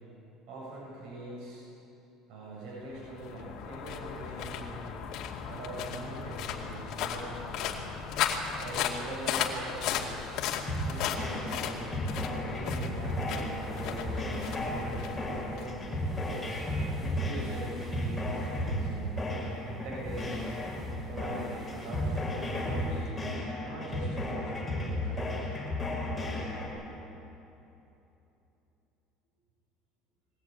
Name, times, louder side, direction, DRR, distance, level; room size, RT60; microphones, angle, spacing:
voice 1, 0.5-1.6 2.3-5.1 5.5-7.9 8.6-10.3 10.8-11.9 12.4-15.9 16.7-20.5 21.0-23.0 23.6-25.5, right 2 dB, 65° right, -5 dB, 7.5 m, -42 dB
sound 1, 2.9-16.3, left 8 dB, 60° left, 2.4 m, -36 dB
sound 2, 10.7-26.7, left 1 dB, 5° left, 5.7 m, -34 dB
sound 3, 12.8-23.1, left 1 dB, 15° right, 5.3 m, -48 dB
21.5 x 18.0 x 9.0 m, 3.0 s
cardioid pair, 155°, 0 cm